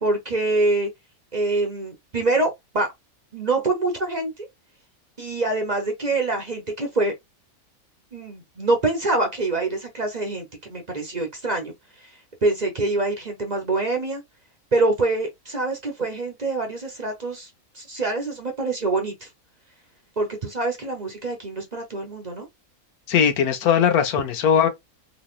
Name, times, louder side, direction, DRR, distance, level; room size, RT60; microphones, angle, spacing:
voice 1, 0.0-0.9 1.3-2.9 3.3-4.3 5.2-7.1 8.1-11.7 12.4-14.2 14.7-17.5 17.7-19.3 20.2-22.5, right 2 dB, 35° right, 0.8 m, -25 dB
voice 2, 23.1-24.7, left 8 dB, 85° left, 1.3 m, -19 dB
4.0 x 3.0 x 2.4 m
omnidirectional pair, 1.5 m